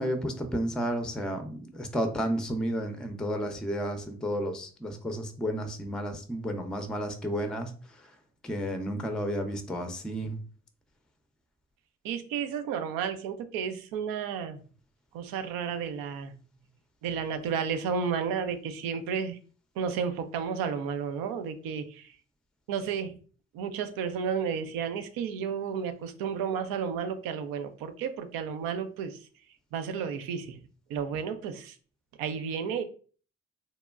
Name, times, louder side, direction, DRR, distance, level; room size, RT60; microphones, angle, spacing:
voice 1, 0.0-8.1 8.4-10.4, equal, ahead, 6 dB, 0.5 m, -32 dB
voice 2, 12.0-14.6 15.1-16.3 17.0-19.4 19.8-22.1 22.7-23.1 23.5-29.2 29.7-30.6 30.9-31.8 32.2-32.8, right 7 dB, 80° right, 8 dB, 0.5 m, -32 dB
2.9 x 2.1 x 2.3 m, 0.40 s
hypercardioid pair, 40°, 34 cm